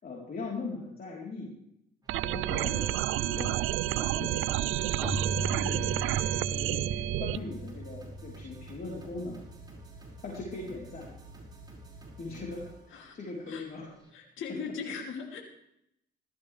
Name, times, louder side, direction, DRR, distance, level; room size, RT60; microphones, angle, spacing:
voice 1, 0.0-1.6 2.2-9.4 10.2-11.1 12.2-14.2, left 3 dB, 50° left, -3 dB, 3.9 m, -40 dB
sound 1, 2.0-14.1, right 2 dB, 20° right, 5.4 m, -52 dB
sound 2, 2.1-7.4, right 15 dB, 85° right, 0.4 m, -30 dB
Keyboard (musical), 5.0-9.5, right 1 dB, ahead, 1.0 m, -38 dB
voice 2, 14.1-15.4, left 5 dB, 80° left, 1 dB, 2.9 m, -39 dB
17.0 x 13.5 x 3.4 m, 0.77 s
cardioid pair, 90°, 20 cm